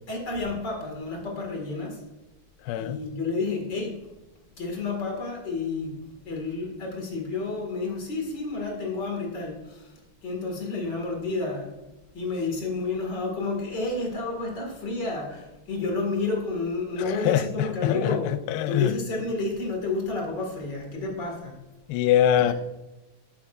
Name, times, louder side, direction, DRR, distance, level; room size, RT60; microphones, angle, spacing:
voice 1, 0.1-2.0 2.8-4.1 4.6-6.0 6.2-11.7 12.1-21.6 22.4-22.5, left 3 dB, 40° left, 1.9 m, -30 dB
voice 2, 2.6-3.0 17.0-18.9 21.9-22.5, left 11 dB, 85° left, 2.5 m, -24 dB
14.0 x 7.1 x 2.5 m
omnidirectional pair, 4.4 m